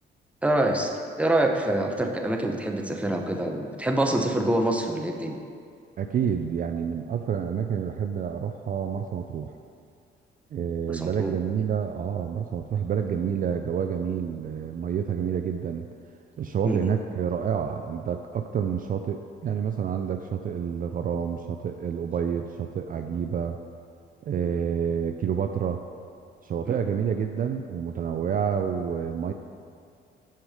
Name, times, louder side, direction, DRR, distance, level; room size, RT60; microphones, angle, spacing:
voice 1, 0.4-0.9 1.2-5.4 10.9-11.3 16.6-16.8 26.6-26.8, right 1 dB, 5° right, 2 dB, 0.8 m, -25 dB
voice 2, 6.0-9.5 10.5-15.9 16.4-23.6 24.3-25.8 26.4-29.3, right 7 dB, 45° right, 6 dB, 0.4 m, -28 dB
6.0 x 5.8 x 4.9 m, 2.3 s
cardioid pair, 90°, 20 cm